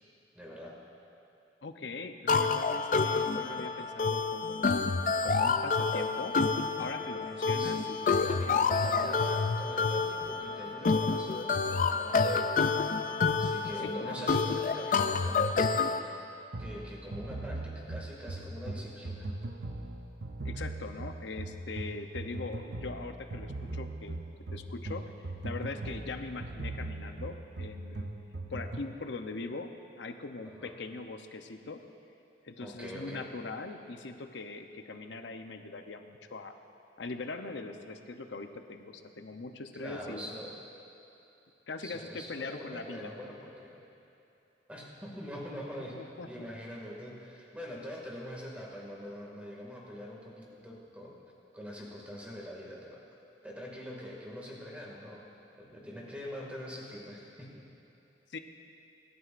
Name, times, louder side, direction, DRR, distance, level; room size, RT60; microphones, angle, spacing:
voice 1, 0.3-0.7 7.4-7.9 8.2-12.8 13.4-16.0 16.6-19.3 25.7-25.9 30.5-30.7 32.6-33.3 39.7-40.6 41.8-43.8 44.7-46.0 46.3-51.1 51.5-53.0 53.4-55.2 55.6-57.5, equal, 5° right, -3 dB, 2.1 m, -43 dB
voice 2, 1.6-4.7 5.2-6.4 6.8-9.1 13.8-14.3 20.4-24.2 24.5-25.0 25.4-28.1 28.5-29.7 30.0-31.8 32.4-36.5 37.0-40.3 41.7-43.1 45.9-46.5 58.3-58.4, left 3 dB, 75° left, 7 dB, 0.7 m, -41 dB
sound 1, 2.3-16.0, left 4 dB, 45° left, 0.4 m, -28 dB
sound 2, 16.5-29.0, right 2 dB, 65° right, 0.7 m, -40 dB
25.5 x 11.0 x 2.5 m, 2.9 s
head